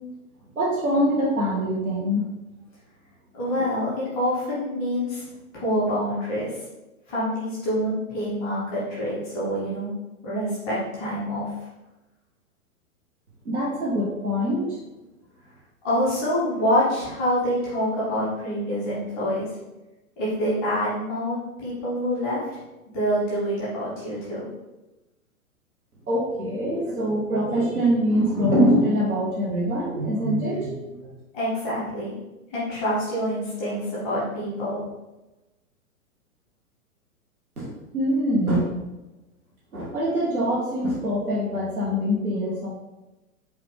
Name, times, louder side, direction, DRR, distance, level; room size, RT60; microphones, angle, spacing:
voice 1, 0.6-2.2 3.6-3.7 13.4-14.8 26.1-31.1 37.6-38.7 39.7-42.7, equal, 75° right, -5 dB, 1.1 m, -24 dB
voice 2, 3.3-5.3 5.5-6.6 7.1-9.9 10.2-11.5 15.8-19.5 20.2-22.4 22.9-24.5 31.3-32.2 32.5-34.9, equal, ahead, -21 dB, 0.3 m, -26 dB
4.7 x 2.4 x 3.2 m, 1.0 s
figure-of-eight pair, 110°, 44 cm